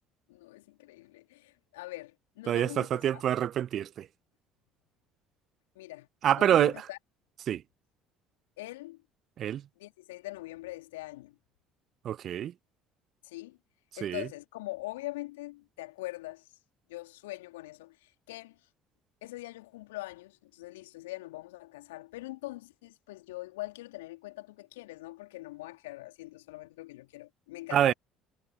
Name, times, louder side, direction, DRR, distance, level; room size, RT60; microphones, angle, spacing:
voice 1, 0.3-3.2 5.7-6.1 6.4-7.0 8.6-9.0 9.8-11.4 13.2-13.6 14.0-16.5 16.9-18.6 19.2-27.9, left 19 dB, 75° left, 2.8 m, -43 dB
voice 2, 2.5-4.1 6.2-6.7 7.5-7.6 9.4-9.6 12.0-12.5 14.0-14.3 27.7-27.9, right 10 dB, 50° right, 0.6 m, -26 dB
figure-of-eight pair, 60°, 0 cm